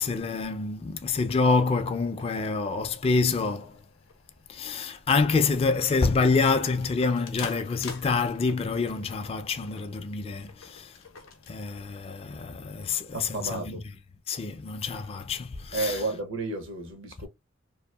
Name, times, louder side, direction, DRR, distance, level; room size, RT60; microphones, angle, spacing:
voice 1, 0.0-3.8 4.5-11.0 11.5-13.8 14.3-16.0, left 4 dB, 30° left, 0.3 m, -27 dB
sound 1, 0.9-11.5, left 5 dB, 90° left, 0.6 m, -47 dB
voice 2, 13.1-13.8 15.7-17.3, right 3 dB, 65° right, 0.7 m, -32 dB
2.7 x 2.3 x 2.2 m
head